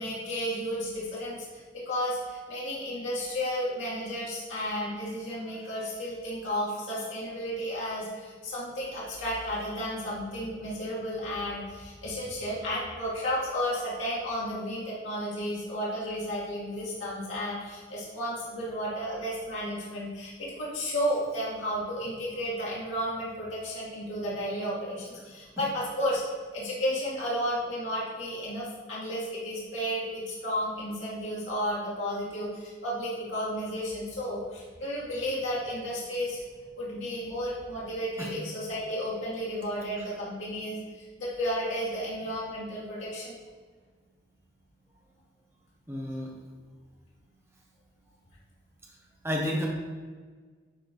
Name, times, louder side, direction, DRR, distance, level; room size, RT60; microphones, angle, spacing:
voice 1, 0.0-26.2 26.5-36.4 36.8-43.3, equal, 90° left, -7 dB, 2.2 m, -33 dB
voice 2, 45.9-46.3 49.2-49.7, equal, 15° right, -1 dB, 1.3 m, -33 dB
11.0 x 3.8 x 4.5 m, 1.5 s
head